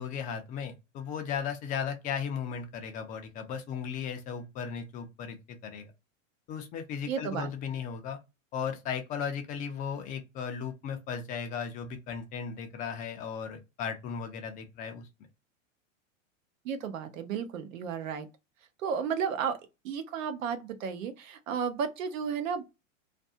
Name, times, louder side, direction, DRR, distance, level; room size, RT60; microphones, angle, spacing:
voice 1, 0.0-5.9 6.5-8.2 8.5-15.1, left 7 dB, 20° left, 0.4 m, -36 dB
voice 2, 7.1-7.5 16.6-18.3 18.8-19.6 19.8-22.6, right 7 dB, 80° right, 0.8 m, -33 dB
2.4 x 2.3 x 2.7 m
supercardioid pair, 135°, 39 cm